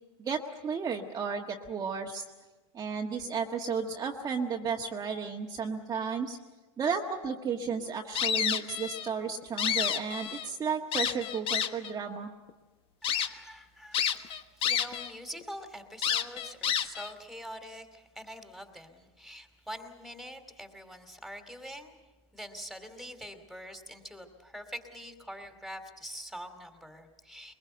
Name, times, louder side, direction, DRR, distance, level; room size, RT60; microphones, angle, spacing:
voice 1, 0.2-2.2 2.7-6.4 6.8-12.3, right 6 dB, 25° right, 0 dB, 1.5 m, -33 dB
sound 1, 8.2-9.1 9.4-10.5 10.9-11.9 12.5-12.6 13.0-13.3 13.9-15.1 15.4-15.5 16.0-17.1, left 9 dB, 35° left, 1.3 m, -29 dB
voice 2, 13.0-22.0 22.3-27.5, equal, ahead, 7 dB, 2.7 m, -45 dB
22.5 x 21.5 x 7.9 m, 1.2 s
supercardioid pair, 120°, 15 cm